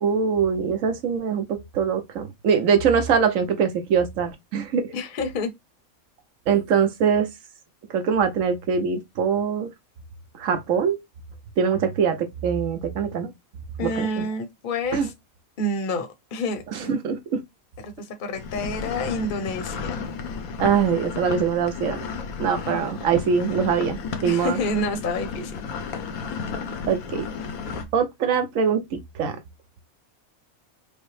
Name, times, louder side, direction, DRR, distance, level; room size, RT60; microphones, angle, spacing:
voice 1, 0.0-4.9 6.5-7.3 7.9-9.7 10.4-11.0 11.6-13.3 13.8-14.2 14.9-15.1 16.7-17.4 20.6-22.0 22.4-24.6 26.9-27.3 27.9-29.4, right 6 dB, 70° right, 1.1 m, -23 dB
voice 2, 4.9-5.5 13.8-15.1 15.6-17.0 17.8-20.1 24.2-25.6, left 1 dB, 45° left, 0.8 m, -28 dB
sound 1, 18.3-27.8, left 6 dB, 80° left, 1.2 m, -33 dB
5.3 x 2.1 x 3.2 m
omnidirectional pair, 1.5 m